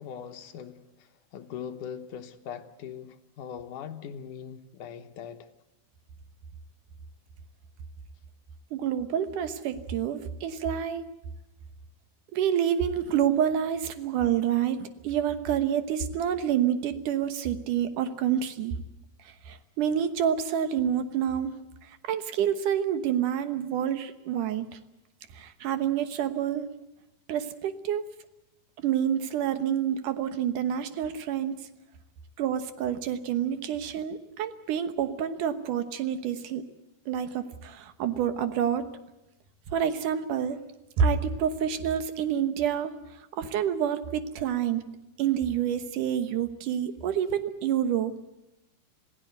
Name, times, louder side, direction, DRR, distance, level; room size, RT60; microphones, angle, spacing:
voice 1, 0.0-5.5, left 8 dB, 70° left, 2.1 m, -41 dB
voice 2, 8.7-11.1 12.3-18.8 19.5-21.5 21.9-24.7 25.3-26.7 27.3-28.1 28.8-31.6 32.4-36.6 37.1-38.9 39.7-40.6 41.0-42.9 43.4-44.8 45.2-48.1, right 9 dB, 65° right, 2.3 m, -28 dB
27.0 x 16.5 x 8.0 m
omnidirectional pair, 4.7 m